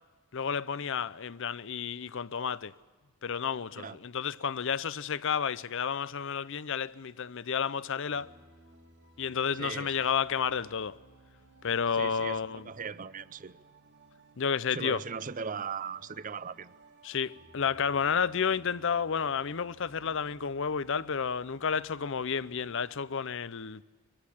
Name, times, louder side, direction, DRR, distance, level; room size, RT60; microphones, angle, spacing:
voice 1, 0.3-2.7 3.2-8.3 9.2-11.0 11.6-12.6 14.4-15.0 17.0-23.8, left 6 dB, 60° left, 0.6 m, -31 dB
sound 1, 8.1-22.9, right 2 dB, 55° right, 2.1 m, -59 dB
voice 2, 9.5-10.1 11.9-13.6 14.7-16.7, right 5 dB, 35° right, 0.6 m, -39 dB
23.0 x 14.5 x 9.9 m
head